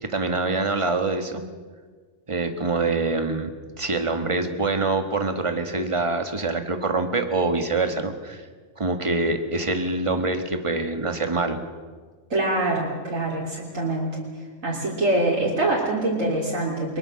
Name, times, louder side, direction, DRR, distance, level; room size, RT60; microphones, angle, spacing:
voice 1, 0.0-1.5 2.3-3.5 3.8-8.5 8.8-11.6, right 3 dB, 25° right, 6 dB, 1.7 m, -25 dB
voice 2, 12.3-14.2 14.6-17.0, right 2 dB, 85° right, -4 dB, 3.7 m, -24 dB
23.0 x 22.0 x 6.4 m, 1.5 s
omnidirectional pair, 1.3 m